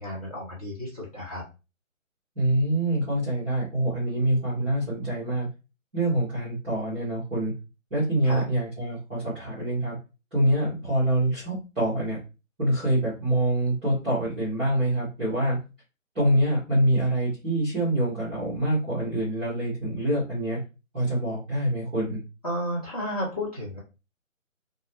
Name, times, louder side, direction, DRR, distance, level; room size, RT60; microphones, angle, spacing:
voice 1, 0.0-1.4 8.2-8.4 22.4-23.8, equal, 30° left, -6 dB, 0.9 m, -32 dB
voice 2, 2.3-5.5 5.9-7.5 7.9-10.0 10.3-12.2 12.6-15.6 16.1-20.6 20.9-22.2, right 1 dB, ahead, -9 dB, 0.8 m, -25 dB
2.3 x 2.2 x 3.0 m, 0.29 s
figure-of-eight pair, 160°, 40 cm